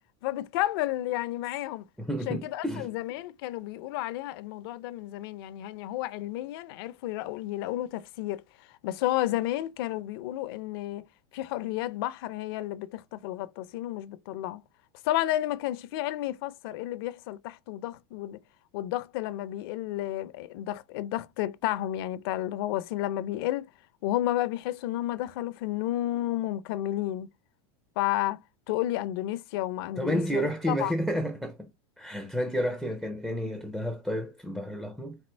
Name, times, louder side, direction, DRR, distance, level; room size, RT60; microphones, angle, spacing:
voice 1, 0.2-1.8 2.3-8.4 8.8-11.0 11.3-14.6 15.0-18.4 18.7-23.7 24.0-27.3 28.0-28.4 28.7-30.9, left 14 dB, 60° left, 0.5 m, -31 dB
voice 2, 2.0-2.9 30.0-31.7 32.0-35.2, equal, ahead, 0.4 m, -31 dB
4.3 x 2.4 x 4.3 m
supercardioid pair, 155°, 14 cm